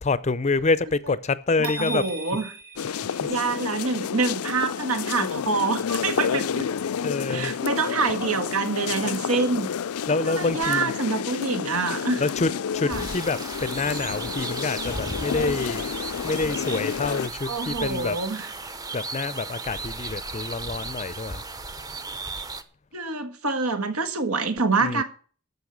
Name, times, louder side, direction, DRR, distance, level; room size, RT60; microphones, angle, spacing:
voice 1, 0.0-2.1 2.9-3.3 7.0-7.5 10.1-10.9 12.2-15.9 16.2-18.2 18.9-21.4 24.8-25.0, left 3 dB, 30° left, 0.5 m, -27 dB
sound 1, 1.6-3.8, equal, 45° right, 2.7 m, -38 dB
voice 2, 1.6-2.5 3.3-6.7 7.3-9.7 10.1-12.2 12.8-13.1 17.5-18.5 22.9-25.0, right 4 dB, 80° right, 1.7 m, -26 dB
sound 2, 2.8-17.3, left 7 dB, 80° left, 0.4 m, -30 dB
sound 3, 12.9-22.6, right 3 dB, 15° right, 0.7 m, -35 dB
13.5 x 5.6 x 8.0 m
head